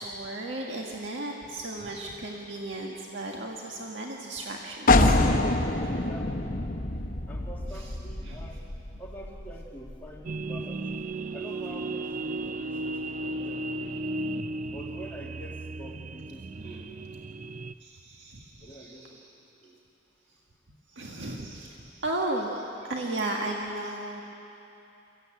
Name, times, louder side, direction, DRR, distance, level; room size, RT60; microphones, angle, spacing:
voice 1, 0.0-5.1 7.7-7.9 8.2-8.5 14.7-14.8 16.5-16.8 17.8-19.2 20.9-24.2, right 2 dB, 80° right, -1 dB, 1.7 m, -35 dB
sound 1, 4.9-10.4, left 2 dB, 45° left, 1.1 m, -26 dB
voice 2, 5.9-6.6 7.3-8.7 9.0-10.8 11.3-14.1 14.7-16.9 18.6-19.2 19.6-19.8, equal, 10° left, -3 dB, 2.5 m, -46 dB
sound 2, 10.2-17.7, right 2 dB, 45° right, 0.5 m, -35 dB
23.5 x 15.5 x 9.1 m, 2.8 s
head